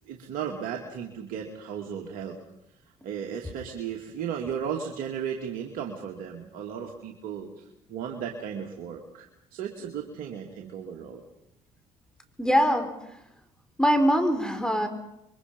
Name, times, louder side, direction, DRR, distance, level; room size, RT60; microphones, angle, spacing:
voice 1, 0.1-2.4 3.0-7.6 7.9-11.2, right 8 dB, 70° right, 1 dB, 2.6 m, -35 dB
voice 2, 12.4-13.2 13.8-14.9, equal, 5° left, 6 dB, 4.1 m, -23 dB
27.0 x 23.5 x 5.4 m, 0.85 s
hypercardioid pair, 65°, 15 cm